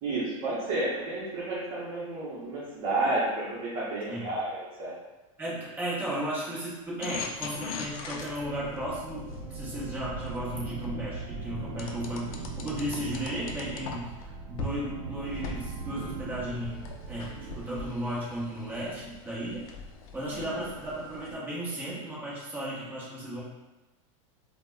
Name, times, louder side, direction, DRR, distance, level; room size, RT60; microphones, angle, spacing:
voice 1, 0.0-4.9 20.3-20.6, right 2 dB, 45° right, -8 dB, 0.8 m, -31 dB
voice 2, 5.4-19.6 20.1-23.4, right 1 dB, 10° right, -8 dB, 0.8 m, -35 dB
sound 1, 7.0-10.9 11.8-14.2 14.6-14.8 15.2-21.3, left 4 dB, 80° left, 0.5 m, -41 dB
sound 2, 7.1-19.2, right 3 dB, 80° right, 0.5 m, -40 dB
3.9 x 2.1 x 2.2 m, 1.1 s
supercardioid pair, 145°, 18 cm